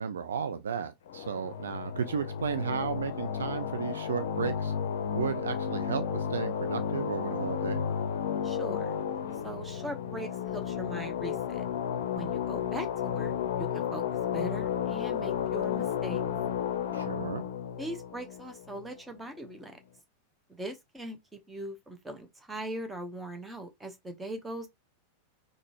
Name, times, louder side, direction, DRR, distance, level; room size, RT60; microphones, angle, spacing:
voice 1, 0.0-4.7 5.1-7.8 16.9-17.4, right 7 dB, 65° right, 0.4 m, -34 dB
sound 1, 1.1-19.2, left 8 dB, 60° left, 0.5 m, -33 dB
voice 2, 8.4-9.0 9.4-11.6 12.1-16.2 17.8-19.8 20.5-24.7, right 1 dB, 10° right, 0.9 m, -41 dB
3.8 x 2.5 x 3.1 m
figure-of-eight pair, 90°, 0 cm